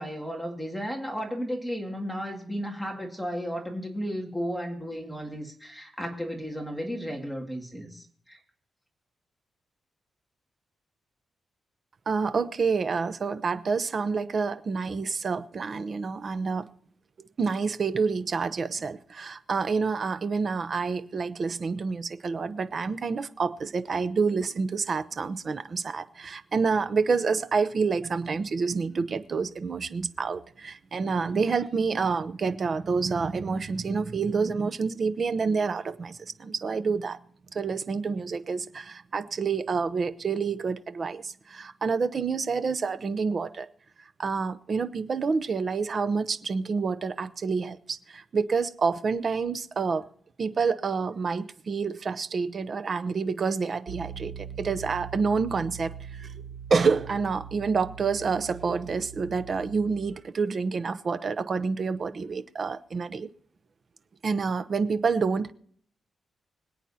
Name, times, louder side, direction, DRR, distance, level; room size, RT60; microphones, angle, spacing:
voice 1, 0.0-8.4, equal, ahead, 2.0 m, -34 dB
voice 2, 12.1-16.7 17.2-37.2 37.5-43.7 44.2-50.0 50.4-56.3 56.7-63.3 64.2-65.5, right 5 dB, 40° right, 0.7 m, -28 dB
Piano, 53.9-60.2, right 7 dB, 85° right, 0.6 m, -42 dB
25.5 x 8.9 x 2.8 m
wide cardioid pair, 160°, 0 cm